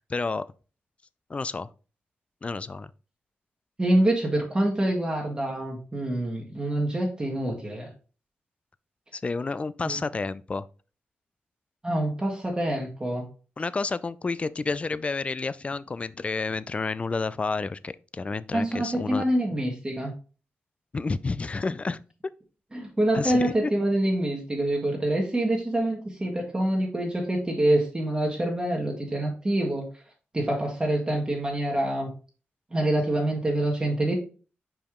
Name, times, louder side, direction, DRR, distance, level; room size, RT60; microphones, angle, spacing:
voice 1, 0.1-0.5 1.3-1.7 2.4-2.9 9.1-10.6 13.6-19.2 20.9-22.0 23.1-23.7, left 3 dB, 30° left, 0.4 m, -30 dB
voice 2, 3.8-7.9 9.8-10.0 11.8-13.3 18.5-20.1 22.7-29.9 30.3-32.1 32.7-34.1, right 1 dB, 20° right, 1.5 m, -26 dB
5.3 x 4.8 x 3.7 m
cardioid pair, 85°, 4 cm